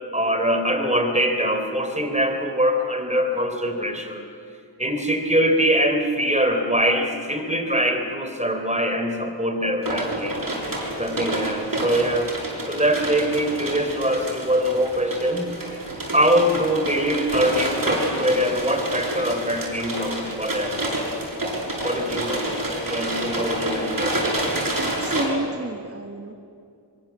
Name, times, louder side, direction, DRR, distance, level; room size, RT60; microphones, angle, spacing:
voice 1, 0.1-4.2 4.8-10.4 11.0-12.3 12.7-15.5 16.1-20.8 21.8-22.6 22.9-24.3, equal, 15° right, 5 dB, 3.9 m, -23 dB
sound 1, 9.8-25.2, right 1 dB, 50° right, 7.2 m, -28 dB
voice 2, 24.8-26.3, right 2 dB, 30° right, 4 dB, 1.5 m, -30 dB
24.5 x 23.0 x 7.4 m, 2.4 s
cardioid pair, 55°, 44 cm